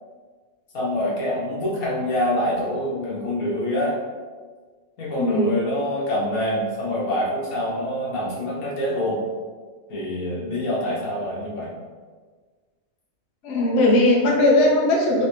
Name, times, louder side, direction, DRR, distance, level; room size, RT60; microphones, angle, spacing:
voice 1, 0.7-4.0 5.0-9.2 9.9-11.7, left 1 dB, 80° left, -6 dB, 1.6 m, -25 dB
voice 2, 5.1-5.5 13.4-15.3, left 1 dB, 60° left, -2 dB, 0.9 m, -18 dB
4.0 x 3.3 x 3.0 m, 1.5 s
omnidirectional pair, 1.5 m